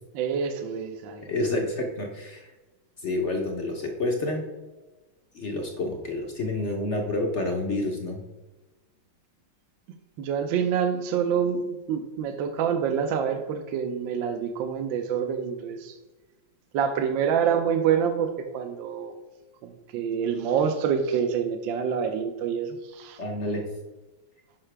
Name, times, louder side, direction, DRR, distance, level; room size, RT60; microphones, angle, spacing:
voice 1, 0.1-1.3 10.2-15.9 16.7-19.1 19.9-23.2, right 7 dB, 70° right, 6 dB, 1.3 m, -26 dB
voice 2, 1.2-2.5 3.0-4.5 5.3-8.2 23.2-23.6, left 2 dB, 50° left, 2 dB, 0.8 m, -29 dB
9.7 x 5.6 x 3.3 m, 1.2 s
omnidirectional pair, 2.3 m